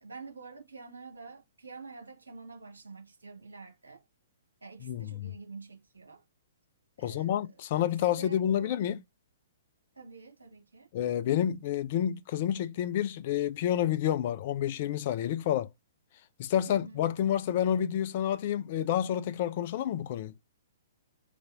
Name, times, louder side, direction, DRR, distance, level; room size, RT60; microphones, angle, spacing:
voice 1, 0.0-4.0 4.6-6.2 7.0-8.9 9.9-10.9 16.7-17.1, right 4 dB, 75° right, 1.6 m, -48 dB
voice 2, 4.8-5.3 7.0-9.0 10.9-15.7 16.4-20.3, left 10 dB, 45° left, 0.4 m, -29 dB
4.0 x 3.0 x 2.5 m
figure-of-eight pair, 120°, 0 cm